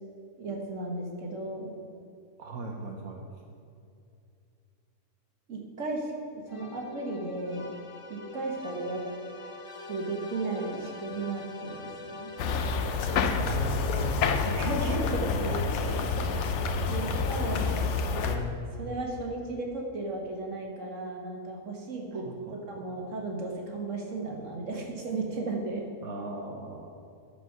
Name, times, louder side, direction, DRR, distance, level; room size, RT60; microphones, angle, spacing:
voice 1, 0.4-1.7 5.5-7.7 8.1-9.0 9.9-12.3 14.4-16.1 16.9-17.6 18.8-22.3 22.7-25.9, right 2 dB, 65° right, 0 dB, 1.9 m, -35 dB
voice 2, 2.4-3.2 13.4-14.2 17.4-17.7 22.1-22.8 26.0-26.9, right 2 dB, 90° right, 1 dB, 1.4 m, -39 dB
sound 1, 6.5-13.3, left 3 dB, 35° left, 0.5 m, -44 dB
sound 2, 12.4-18.4, left 4 dB, 65° left, 0.9 m, -28 dB
sound 3, 13.0-18.8, left 4 dB, 90° left, 1.3 m, -39 dB
14.5 x 5.1 x 6.0 m, 2.5 s
omnidirectional pair, 1.4 m